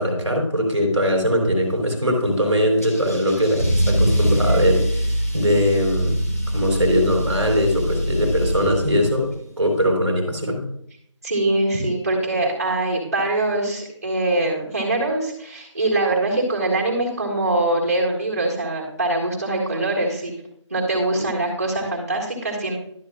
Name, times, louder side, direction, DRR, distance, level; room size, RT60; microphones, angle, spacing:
voice 1, 0.0-6.2 6.5-9.3 9.6-10.7, equal, 5° left, -17 dB, 1.9 m, -21 dB
Car / Engine starting / Accelerating revving vroom, 2.8-9.3, equal, 30° left, 1.3 m, -23 dB
voice 2, 11.2-20.3 20.7-22.8, right 2 dB, 30° right, -2 dB, 2.0 m, -23 dB
12.0 x 7.3 x 2.4 m, 0.69 s
figure-of-eight pair, 175°, 16 cm